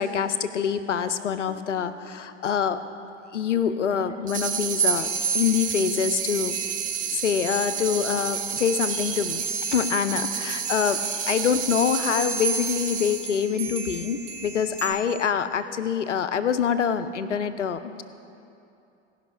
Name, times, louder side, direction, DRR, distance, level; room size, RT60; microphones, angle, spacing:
voice 1, 0.0-2.8 3.3-6.6 7.1-9.4 9.7-18.0, left 7 dB, 80° left, 12 dB, 0.6 m, -25 dB
sound 1, 4.3-13.4, right 8 dB, 20° right, 0.8 m, -31 dB
sound 2, 4.8-14.9, right 4 dB, 70° right, 1.4 m, -32 dB
17.5 x 5.9 x 4.9 m, 2.7 s
figure-of-eight pair, 85°, 36 cm